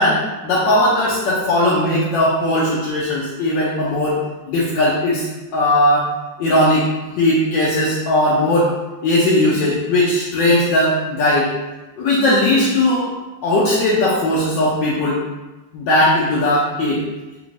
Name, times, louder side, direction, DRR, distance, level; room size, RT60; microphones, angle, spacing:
voice 1, 0.0-4.2 4.5-6.1 6.4-6.9 7.2-8.7 9.0-11.5 12.0-13.1 13.4-15.2 15.7-17.0, left 1 dB, 75° left, -6 dB, 1.2 m, -18 dB
3.4 x 2.5 x 3.0 m, 1.1 s
omnidirectional pair, 2.0 m